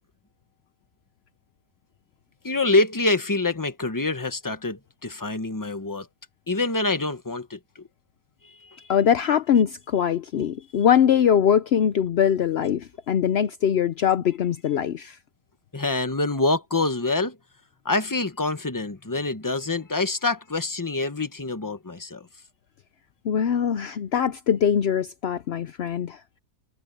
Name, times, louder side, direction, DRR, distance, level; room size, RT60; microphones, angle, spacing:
voice 1, 2.4-6.1 6.5-7.8 8.4-8.9 15.7-17.4 17.8-22.3, left 2 dB, 15° left, 1.0 m, -26 dB
voice 2, 8.9-15.2 23.2-26.2, left 8 dB, 75° left, 0.5 m, -22 dB
omnidirectional pair, 1.8 m